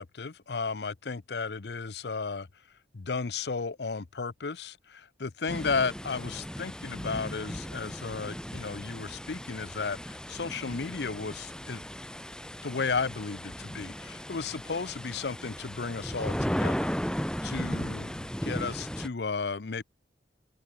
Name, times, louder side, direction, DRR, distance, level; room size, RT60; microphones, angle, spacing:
voice 1, 0.0-2.5 2.9-11.8 12.6-16.9 17.4-19.8, left 4 dB, 65° left, 0.7 m, -34 dB
sound 1, 5.5-19.1, equal, 5° left, 1.8 m, -36 dB
open air
head